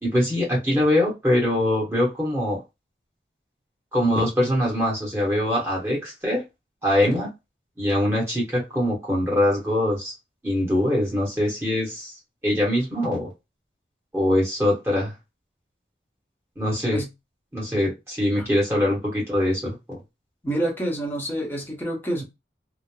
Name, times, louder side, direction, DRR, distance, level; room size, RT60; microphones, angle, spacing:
voice 1, 0.0-2.6 3.9-6.4 6.8-7.3 7.8-10.1 10.4-12.1 12.4-13.3 14.1-15.1 16.6-17.0 17.5-20.0, left 1 dB, 15° right, 1.0 m, -23 dB
voice 2, 20.4-22.2, right 1 dB, 10° left, 0.8 m, -27 dB
2.9 x 2.1 x 2.2 m
head